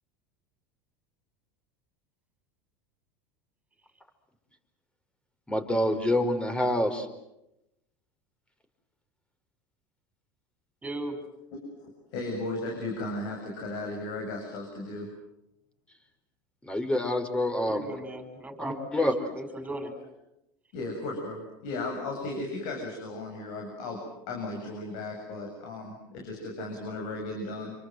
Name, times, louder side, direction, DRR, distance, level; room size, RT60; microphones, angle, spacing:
voice 1, 5.5-7.1 16.6-17.9 18.6-19.1, left 1 dB, 10° left, 7 dB, 4.8 m, -27 dB
voice 2, 10.8-11.2 17.7-19.1 19.3-19.9, right 1 dB, 10° right, 6 dB, 5.9 m, -37 dB
voice 3, 11.8-15.1 20.7-24.0 24.3-27.7, left 2 dB, 65° left, 1 dB, 7.9 m, -35 dB
28.0 x 24.5 x 7.9 m, 0.86 s
supercardioid pair, 110°, 10 cm